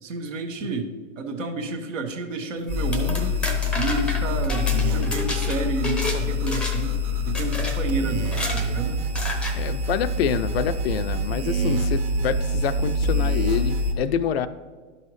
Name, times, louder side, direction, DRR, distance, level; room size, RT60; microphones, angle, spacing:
voice 1, 0.0-0.9 1.2-3.3 3.7-7.0 7.2-9.0, right 3 dB, 75° right, 5 dB, 1.3 m, -30 dB
sound 1, 2.7-6.2 6.5-6.9 7.3-7.8 8.2-8.7 9.1-9.6, left 1 dB, 5° left, 0.6 m, -30 dB
sound 2, 2.7-13.9, left 2 dB, 45° right, 1.4 m, -25 dB
voice 2, 9.6-14.5, left 8 dB, 55° left, 12 dB, 0.5 m, -26 dB
11.5 x 5.6 x 3.2 m, 1.4 s
hypercardioid pair, 130°, 39 cm